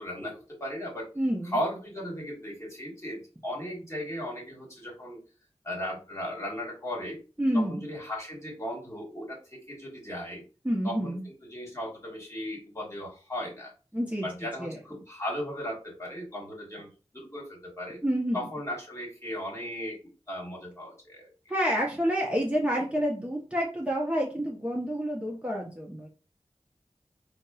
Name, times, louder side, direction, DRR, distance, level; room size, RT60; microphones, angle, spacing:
voice 1, 0.0-1.1 1.5-5.2 5.6-7.2 7.5-10.4 10.8-13.7 14.2-16.9 17.1-18.0 18.3-20.0 20.3-21.3, equal, 25° left, -3 dB, 1.4 m, -36 dB
voice 2, 1.2-1.6 7.4-7.8 10.6-11.2 13.9-14.3 14.6-14.8 18.0-18.5 21.5-26.1, equal, 10° right, -3 dB, 0.6 m, -28 dB
4.1 x 2.0 x 2.3 m, 0.34 s
wide cardioid pair, 55°, 12 cm